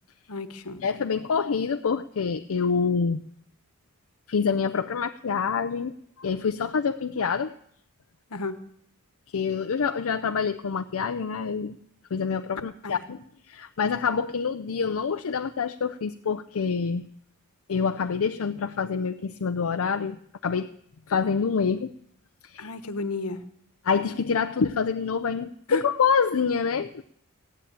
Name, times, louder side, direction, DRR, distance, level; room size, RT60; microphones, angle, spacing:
voice 1, 0.3-0.8 8.3-8.6 12.8-12.9 22.6-23.4 25.7-25.8, left 3 dB, 80° left, 10 dB, 1.2 m, -32 dB
voice 2, 0.8-3.2 4.3-7.5 9.3-11.8 12.1-17.1 17.7-20.7 21.1-21.9 22.4-22.7 23.8-27.0, left 5 dB, 65° left, 7 dB, 0.5 m, -26 dB
15.5 x 10.0 x 8.7 m, 0.69 s
head